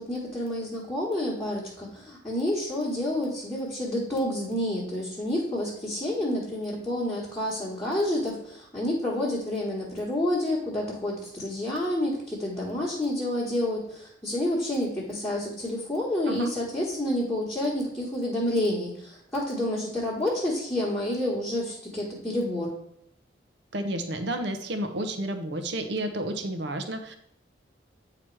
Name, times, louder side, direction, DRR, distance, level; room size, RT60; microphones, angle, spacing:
voice 1, 0.0-22.7, left 1 dB, 10° left, -7 dB, 1.2 m, -29 dB
voice 2, 23.7-27.1, right 1 dB, 65° right, 7 dB, 0.8 m, -31 dB
8.8 x 3.0 x 4.6 m, 0.72 s
head